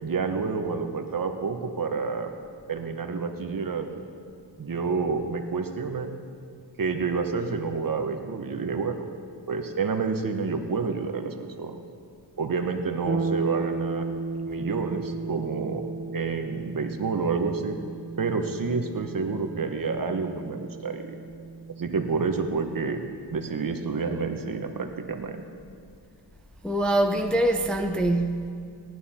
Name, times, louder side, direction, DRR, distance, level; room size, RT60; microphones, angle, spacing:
voice 1, 0.0-2.3 2.7-4.0 4.6-6.1 6.8-9.0 9.5-11.8 12.4-14.1 14.5-15.8 16.1-17.8 18.2-21.2 21.8-23.0 23.3-25.4, right 4 dB, 45° right, 1.1 m, -29 dB
sound 1, 13.1-22.8, right 4 dB, 30° right, 0.9 m, -35 dB
voice 2, 26.6-28.5, right 1 dB, ahead, 0.6 m, -24 dB
18.5 x 11.0 x 4.3 m
wide cardioid pair, 100°, 47 cm